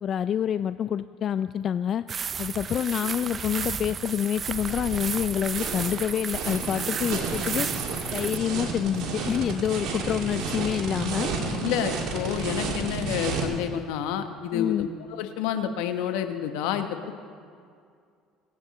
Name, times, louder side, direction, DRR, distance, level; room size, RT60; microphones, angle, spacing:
voice 1, 0.0-2.0 2.4-7.7 8.1-11.3 14.5-14.9, left 9 dB, 50° left, 13 dB, 0.3 m, -27 dB
sound 1, 2.1-8.4, right 6 dB, 35° right, 0.4 m, -33 dB
sound 2, 4.4-13.5, right 3 dB, 65° right, 2.4 m, -32 dB
voice 2, 11.6-17.1, left 9 dB, 80° left, 8 dB, 1.0 m, -29 dB
22.5 x 8.9 x 4.1 m, 2.3 s
supercardioid pair, 95°, 0 cm